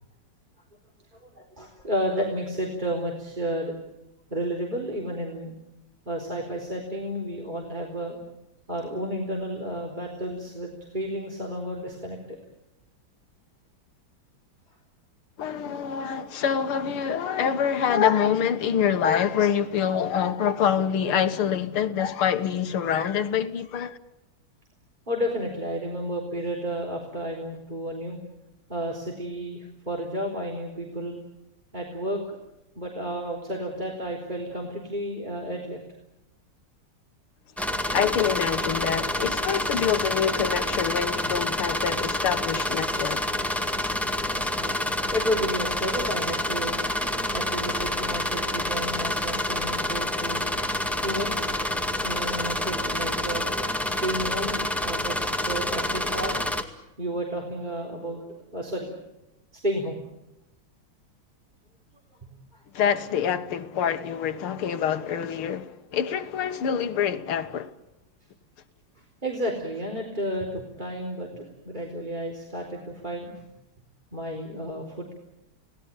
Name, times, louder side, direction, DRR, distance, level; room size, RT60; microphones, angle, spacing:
voice 1, 1.2-3.7 4.3-5.5 6.1-8.2 8.7-12.2 25.1-28.2 28.7-31.2 31.7-32.4 32.8-35.8 45.1-46.8 47.3-50.4 51.0-51.5 52.0-53.5 53.9-56.3 57.0-58.9 59.6-60.0 62.5-62.6 69.0-73.4 74.1-75.1, equal, 20° right, 4.2 m, -32 dB
voice 2, 15.4-24.0 37.9-43.3 62.7-67.7, left 8 dB, 85° left, 2.2 m, -26 dB
sound 1, 37.6-56.6, left 1 dB, ahead, 1.8 m, -28 dB
30.0 x 18.5 x 8.9 m
omnidirectional pair, 2.3 m